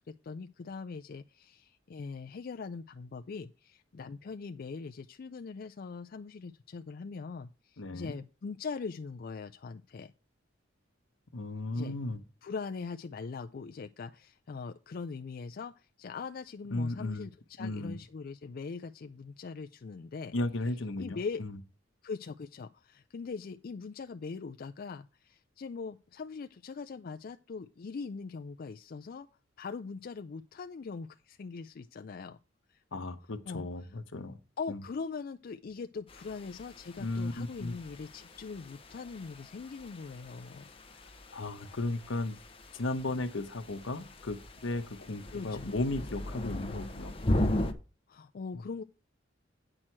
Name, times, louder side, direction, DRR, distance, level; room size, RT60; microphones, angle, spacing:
voice 1, 0.0-10.1 11.7-12.0 12.4-20.3 21.0-21.4 22.0-29.3 29.6-32.4 32.7-32.8 33.5-33.7 34.6-40.7 45.3-45.7 48.1-48.8, left 4 dB, 50° left, 0.4 m, -41 dB
voice 2, 7.8-8.2 11.3-12.2 16.7-17.3 17.6-18.0 20.3-21.6 32.9-34.4 34.7-34.8 37.0-37.7 41.3-42.4 42.7-47.1 48.5-48.6, left 2 dB, 75° left, 0.9 m, -35 dB
sound 1, 36.1-47.7, left 1 dB, 30° left, 0.9 m, -38 dB
8.8 x 6.3 x 4.4 m
head